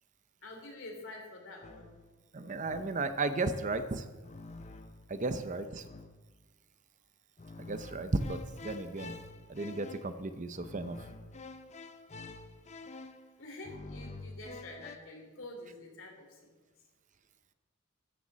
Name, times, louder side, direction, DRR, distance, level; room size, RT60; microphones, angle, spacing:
voice 1, 0.4-1.9 13.4-16.4, left 2 dB, 65° left, 1 dB, 3.3 m, -47 dB
sound 1, 1.6-2.1 2.6-3.2 4.2-5.2 5.8-6.4 7.4-15.0, left 3 dB, 30° left, 0.7 m, -48 dB
voice 2, 2.3-4.0 5.1-5.8 7.6-9.2 9.5-11.0, right 3 dB, 35° right, 10 dB, 0.6 m, -34 dB
13.5 x 6.9 x 7.5 m, 1.2 s
head